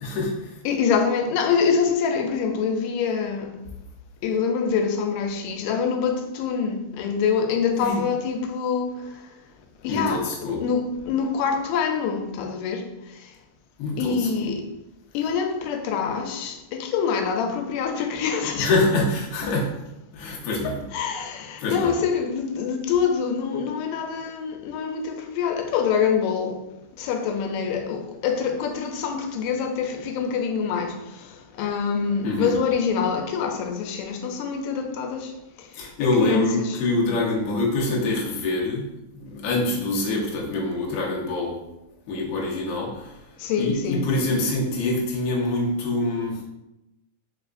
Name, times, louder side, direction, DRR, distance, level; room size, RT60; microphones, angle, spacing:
voice 1, 0.0-0.6 7.8-8.0 9.9-10.6 13.8-14.5 18.5-19.8 20.1-20.8 21.6-21.9 32.2-32.5 35.7-41.6 42.1-43.2 43.6-46.4, left 2 dB, 70° left, 1.5 m, -25 dB
voice 2, 0.7-3.5 4.2-8.9 9.8-12.9 14.0-14.6 15.1-18.7 20.6-26.6 27.0-31.0 31.6-35.3 36.0-36.8 43.4-44.0, left 6 dB, 90° left, 2.2 m, -25 dB
4.7 x 3.3 x 2.5 m
omnidirectional pair, 3.7 m